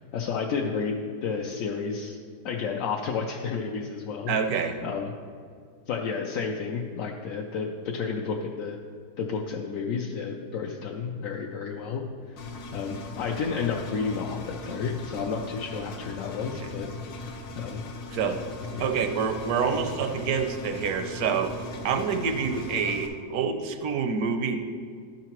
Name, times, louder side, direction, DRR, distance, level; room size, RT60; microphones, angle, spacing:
voice 1, 0.1-2.2 2.4-5.1 5.9-8.8 9.2-12.0 12.7-16.9 17.2-17.3 17.5-17.8 18.7-19.0, left 5 dB, 70° left, 0 dB, 0.8 m, -31 dB
voice 2, 4.3-4.8 16.6-16.7 18.1-18.4 18.8-21.5 21.8-24.6, right 6 dB, 75° right, 6 dB, 1.1 m, -27 dB
Engine, 12.4-23.1, left 3 dB, 85° left, 1.3 m, -39 dB
11.5 x 5.7 x 3.0 m, 2.2 s
omnidirectional pair, 1.7 m